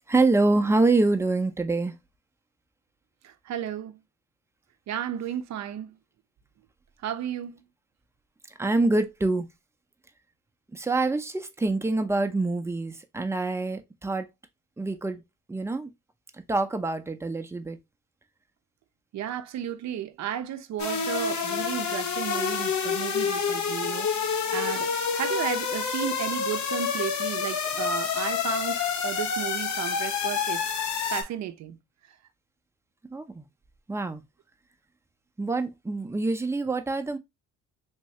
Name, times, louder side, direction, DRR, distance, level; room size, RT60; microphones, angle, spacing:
voice 1, 0.1-2.0 8.6-9.5 10.7-14.3 14.8-15.2 15.5-15.9 16.5-17.8 33.1-33.4 33.9-34.2 35.4-37.2, right 2 dB, 10° right, 0.6 m, -25 dB
voice 2, 3.2-4.0 4.9-6.0 7.0-7.6 19.1-31.8, right 10 dB, 65° right, 0.6 m, -34 dB
sound 1, 20.8-31.2, left 6 dB, 70° left, 0.8 m, -28 dB
3.6 x 2.6 x 3.1 m
cardioid pair, 90°, 30 cm